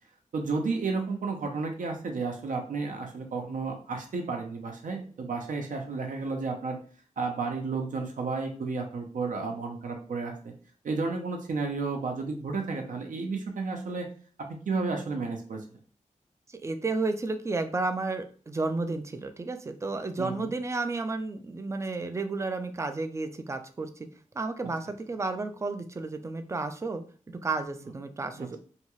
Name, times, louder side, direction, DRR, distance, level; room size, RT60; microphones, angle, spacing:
voice 1, 0.3-6.8 7.2-10.5 10.8-14.1 14.4-15.6 20.2-20.5 28.4-28.5, right 4 dB, 80° right, 3 dB, 0.6 m, -32 dB
voice 2, 16.5-24.1 24.3-27.0 27.4-28.6, right 3 dB, 20° right, 8 dB, 0.3 m, -32 dB
2.7 x 2.3 x 3.0 m, 0.42 s
wide cardioid pair, 95°, 13 cm